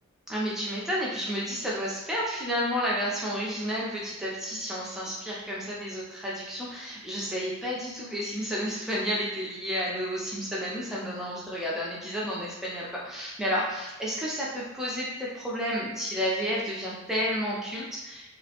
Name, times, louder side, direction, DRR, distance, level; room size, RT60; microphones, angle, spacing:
voice 1, 0.3-18.3, equal, ahead, -5 dB, 0.4 m, -31 dB
2.3 x 2.1 x 2.8 m, 1.0 s
head